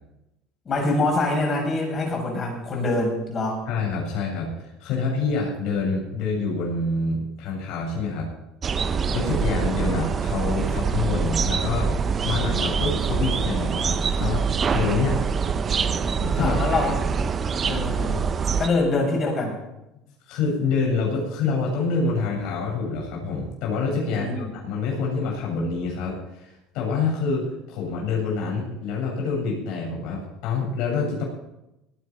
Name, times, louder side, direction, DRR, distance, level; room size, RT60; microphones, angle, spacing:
voice 1, 0.7-3.6 16.4-17.0 17.6-18.3 18.6-19.6 24.1-24.5, left 2 dB, 40° left, 1 dB, 7.2 m, -25 dB
voice 2, 3.7-8.3 9.1-14.4 14.7-15.2 16.0-16.6 20.3-31.2, left 4 dB, 70° left, -2 dB, 7.7 m, -27 dB
sound 1, 8.6-18.7, right 5 dB, 35° right, 1.0 m, -24 dB
20.0 x 10.0 x 5.5 m, 0.93 s
supercardioid pair, 85°, 0 cm